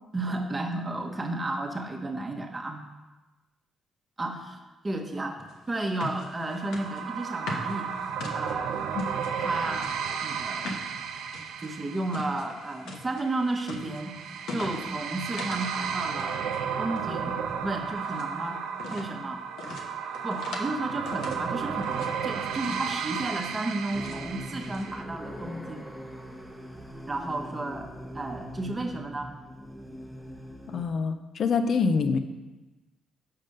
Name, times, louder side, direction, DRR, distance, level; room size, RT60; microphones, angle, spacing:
voice 1, 0.1-2.8 4.2-7.9 8.3-8.9 9.4-9.9 10.2-10.7 11.6-14.2 14.5-16.5 16.8-18.6 18.9-19.5 20.2-25.9 27.1-29.3, right 2 dB, 20° right, 3 dB, 1.1 m, -33 dB
sound 1, 5.5-9.3 9.7-15.8 16.0-16.6 16.9-18.3 18.7-19.1 19.6-20.7 21.0-22.1 22.5-22.9 23.2-24.2 24.6-24.8, left 2 dB, 80° left, 1.0 m, -41 dB
sound 2, 6.4-25.0, right 7 dB, 85° right, 0.5 m, -34 dB
sound 3, 23.9-30.9, equal, ahead, 1.0 m, -42 dB
voice 2, 30.7-32.2, left 5 dB, 55° left, 9 dB, 0.6 m, -25 dB
5.8 x 5.2 x 6.5 m, 1.1 s
cardioid pair, 90°, 0 cm